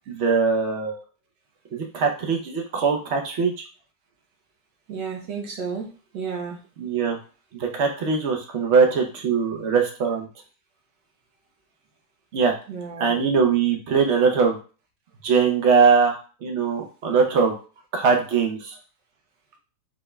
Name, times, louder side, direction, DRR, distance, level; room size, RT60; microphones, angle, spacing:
voice 1, 0.1-1.0 1.7-3.5 6.8-7.2 7.6-10.3 12.3-12.5 13.0-14.6 15.2-17.5 17.9-18.7, right 5 dB, 55° right, 2 dB, 0.9 m, -21 dB
voice 2, 4.9-5.9 6.1-6.6 12.7-13.1 16.6-16.7, right 5 dB, 90° right, 2 dB, 1.6 m, -32 dB
4.1 x 3.6 x 2.2 m, 0.36 s
omnidirectional pair, 1.9 m